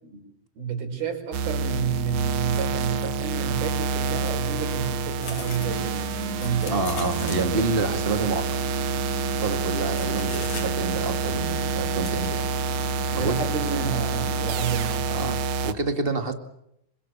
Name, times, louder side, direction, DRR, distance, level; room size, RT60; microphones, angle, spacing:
voice 1, 0.6-6.9 13.2-15.1, right 6 dB, 85° right, 3 dB, 6.9 m, -30 dB
sound 1, 1.3-15.7, right 5 dB, 65° right, 2.4 m, -28 dB
sound 2, 5.2-14.6, left 4 dB, 55° left, 4.4 m, -40 dB
voice 2, 6.7-8.5 9.4-12.4 13.1-13.4 15.1-16.3, right 3 dB, 25° right, 7 dB, 1.2 m, -28 dB
27.0 x 25.0 x 7.3 m, 0.79 s
omnidirectional pair, 4.2 m